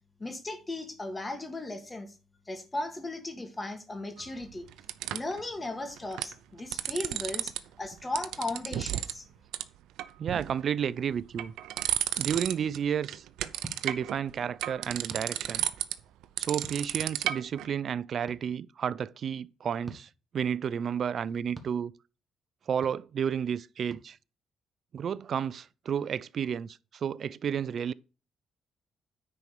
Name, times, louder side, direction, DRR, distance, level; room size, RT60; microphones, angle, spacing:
voice 1, 0.2-2.1 2.5-4.7 5.1-7.5 7.8-9.2, left 2 dB, 20° left, 2.1 m, -36 dB
sound 1, 4.2-5.4 6.0-6.3 6.6-7.6 7.9-9.2 9.5-9.6 10.0-10.6 11.1-12.8 13.0-17.7, right 13 dB, 90° right, 0.7 m, -33 dB
voice 2, 10.2-11.5 12.2-13.3 13.8-15.6 16.4-21.9 22.7-24.2 24.9-27.9, right 8 dB, 55° right, 0.5 m, -31 dB
sound 2, 12.3-12.5 13.6-13.8 15.1-15.3 16.6-16.8 18.3-18.4 19.8-20.0 21.5-21.7 22.8-23.0 23.9-24.0, right 2 dB, 25° right, 1.6 m, -44 dB
9.8 x 4.5 x 6.9 m
cardioid pair, 90°, 0 cm